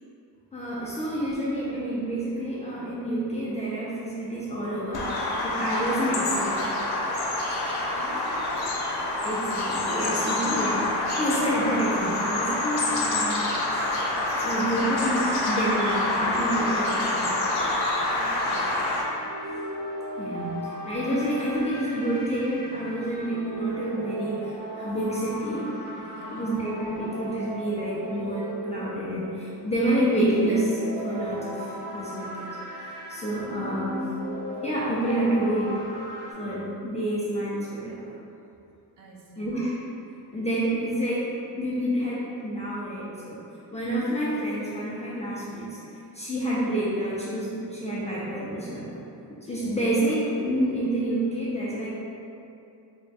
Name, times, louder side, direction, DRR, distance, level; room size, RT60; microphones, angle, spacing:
voice 1, 0.5-6.8 9.2-13.6 14.3-17.4 20.2-25.7 26.3-32.5 33.1-34.0 34.6-35.9 36.4-38.2 39.4-39.8 40.3-43.4 43.7-45.8 46.1-49.0 49.4-51.9, right 1 dB, 20° left, -8 dB, 0.3 m, -28 dB
Bird vocalization bird call bird song, 4.9-19.0, left 2 dB, 70° left, 0.7 m, -27 dB
voice 2, 7.9-8.7 18.2-18.9 26.1-26.5 39.0-39.6 49.6-50.0, right 2 dB, 55° right, -3 dB, 0.6 m, -46 dB
sound 1, 17.1-36.3, right 1 dB, 70° right, 1.2 m, -37 dB
3.4 x 2.2 x 3.9 m, 2.7 s
wide cardioid pair, 175°, 39 cm